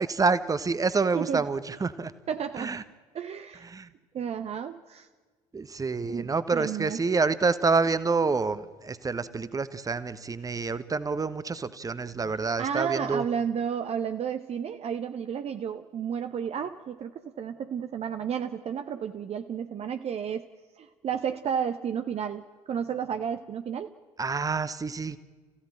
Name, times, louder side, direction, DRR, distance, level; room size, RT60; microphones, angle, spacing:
voice 1, 0.0-2.1 2.6-2.8 3.6-3.9 5.5-13.2 24.2-25.2, right 4 dB, 20° right, 14 dB, 1.2 m, -27 dB
voice 2, 2.3-2.7 3.1-3.6 4.1-5.1 6.1-7.0 12.4-20.4 20.8-23.9, right 8 dB, 35° right, 8 dB, 0.9 m, -32 dB
28.5 x 16.0 x 8.9 m, 1.4 s
figure-of-eight pair, 55°, 17 cm